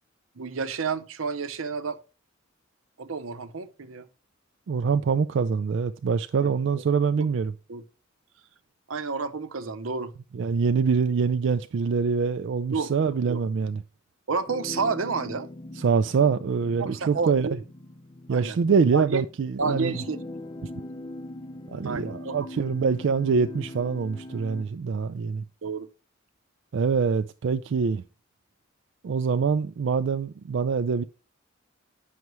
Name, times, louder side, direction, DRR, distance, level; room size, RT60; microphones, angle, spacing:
voice 1, 0.4-2.0 3.0-4.1 6.4-6.5 7.7-7.8 8.9-10.1 12.7-12.9 13.3-13.4 14.3-15.5 16.8-17.6 18.3-18.6 18.9-19.2 19.6-20.2 21.8-22.3 25.6-25.9, right 4 dB, 85° right, 0.7 m, -30 dB
voice 2, 4.7-7.5 10.3-13.8 15.8-17.5 18.3-19.9 21.7-25.4 26.7-28.0 29.0-31.0, right 5 dB, 60° right, 0.3 m, -24 dB
sound 1, 14.5-24.6, left 1 dB, 25° left, 0.5 m, -41 dB
9.4 x 5.7 x 3.1 m
head